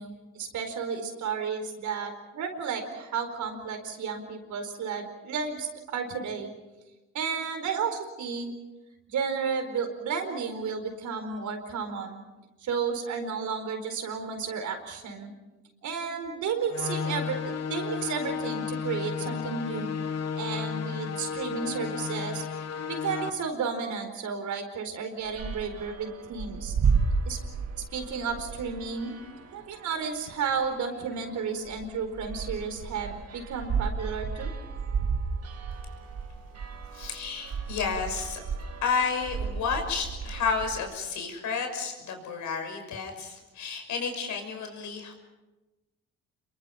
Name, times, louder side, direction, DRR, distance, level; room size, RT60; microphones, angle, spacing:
voice 1, 0.0-6.5 7.1-8.5 9.1-12.2 12.6-15.3 15.8-17.4 17.7-19.9 20.3-22.5 22.9-26.8 27.2-27.4 27.9-29.1 29.5-34.5, right 5 dB, 75° right, 5 dB, 4.6 m, -32 dB
sound 1, 16.7-23.3, left 6 dB, 55° left, 1.5 m, -33 dB
sound 2, 25.2-40.8, right 5 dB, 55° right, 2.2 m, -33 dB
voice 2, 36.9-38.4 38.8-45.1, left 5 dB, 75° left, 5 dB, 6.0 m, -31 dB
28.0 x 23.0 x 5.9 m, 1.1 s
cardioid pair, 90°, 30 cm